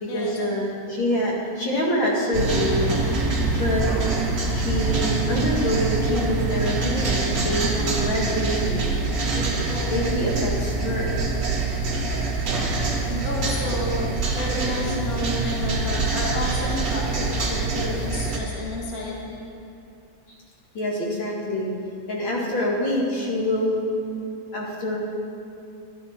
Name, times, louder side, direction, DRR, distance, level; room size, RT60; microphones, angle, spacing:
voice 1, 0.0-3.0 3.6-3.9 4.5-8.8 9.3-11.1 20.7-21.7 22.1-23.9 24.5-25.0, left 1 dB, 75° left, -3 dB, 2.7 m, -26 dB
sound 1, 2.3-18.4, right 3 dB, 65° right, 2.4 m, -25 dB
voice 2, 13.1-14.1 14.3-19.4, left 2 dB, 50° left, -3 dB, 1.8 m, -31 dB
12.5 x 12.0 x 4.3 m, 2.6 s
omnidirectional pair, 2.1 m